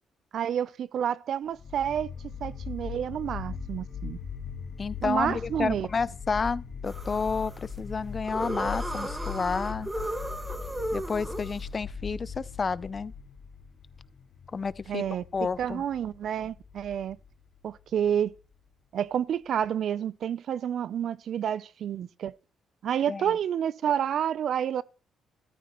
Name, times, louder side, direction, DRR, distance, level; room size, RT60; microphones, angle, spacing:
voice 1, 0.3-2.1 2.4-4.2 5.0-5.9 14.9-15.2 15.6-17.2 17.6-18.4 18.9-22.3 22.8-24.8, right 9 dB, 65° right, 0.5 m, -29 dB
sound 1, 1.6-18.6, left 5 dB, 55° left, 1.2 m, -40 dB
voice 2, 4.8-9.9 10.9-13.1 14.5-15.0 15.3-15.8 23.1-23.3, left 5 dB, 35° left, 0.5 m, -30 dB
sound 2, 6.9-11.8, right 1 dB, 15° right, 1.7 m, -35 dB
13.5 x 13.5 x 3.0 m
cardioid pair, 90°, 0 cm